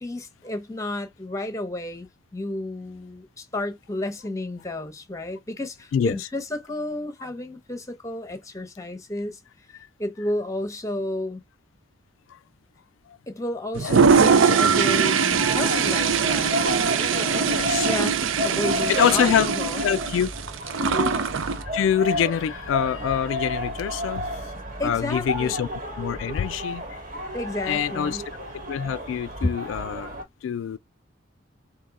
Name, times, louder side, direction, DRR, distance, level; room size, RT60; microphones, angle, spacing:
voice 1, 0.0-2.1 2.3-9.4 10.0-11.4 13.3-19.8 20.8-21.2 24.8-25.5 27.3-28.2 29.4-29.5, left 1 dB, 15° left, 0.8 m, -32 dB
Toilet flush, 13.7-21.6, right 6 dB, 85° right, 0.5 m, -21 dB
sound 1, 15.3-30.2, equal, 45° right, 1.2 m, -32 dB
voice 2, 17.3-17.9 18.9-19.5 19.8-20.3 21.7-24.4 24.8-25.7 26.0-27.0 27.7-30.1 30.4-30.8, left 8 dB, 80° left, 0.3 m, -25 dB
3.6 x 2.7 x 4.0 m
head